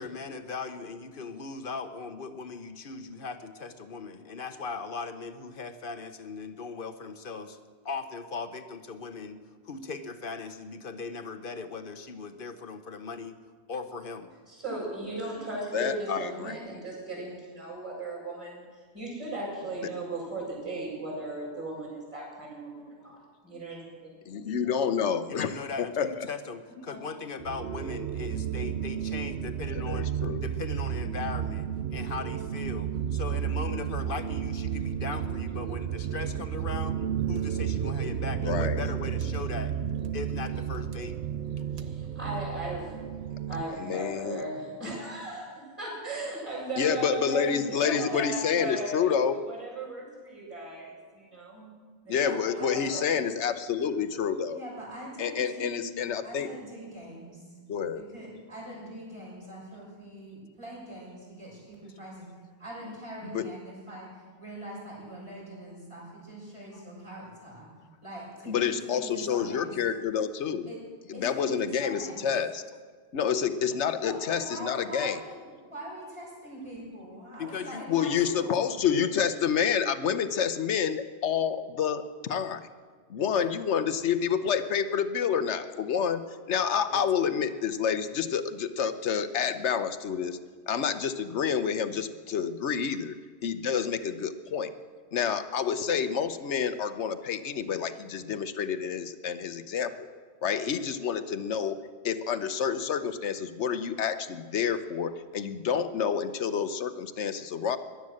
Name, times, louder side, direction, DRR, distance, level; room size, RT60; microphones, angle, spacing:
voice 1, 0.0-7.6 7.8-9.4 9.6-13.4 13.7-14.3 25.3-30.1 30.4-36.9 37.3-39.7 40.1-41.2 77.4-77.8 78.2-78.3 83.3-83.5 86.9-87.0, left 4 dB, 55° left, 9 dB, 1.1 m, -38 dB
voice 2, 14.5-18.7 18.9-23.2 23.4-24.1 26.9-27.0 41.8-43.0 43.5-49.1 49.5-51.7 52.0-53.2, right 2 dB, 10° right, -7 dB, 6.7 m, -37 dB
voice 3, 15.7-16.5 24.3-25.5 25.8-26.1 29.9-30.4 38.4-38.8 43.8-44.4 46.8-49.4 52.1-54.6 55.2-56.5 57.7-58.0 63.3-63.4 68.5-70.7 71.2-72.6 73.1-75.2 77.9-82.7 83.1-90.4 90.7-93.1 93.4-94.7 95.1-100.1 100.4-101.8 102.0-107.8, left 7 dB, 85° left, 11 dB, 1.2 m, -28 dB
sound 1, 27.4-43.6, right 9 dB, 90° right, 1.0 m, -32 dB
voice 4, 52.1-53.2 54.5-55.8 56.2-57.5 57.9-62.3 62.6-67.7 68.0-69.7 70.7-70.8 71.1-72.3 73.9-78.6, right 1 dB, 25° right, -5 dB, 6.6 m, -42 dB
18.0 x 11.5 x 6.5 m, 1.5 s
omnidirectional pair, 1.1 m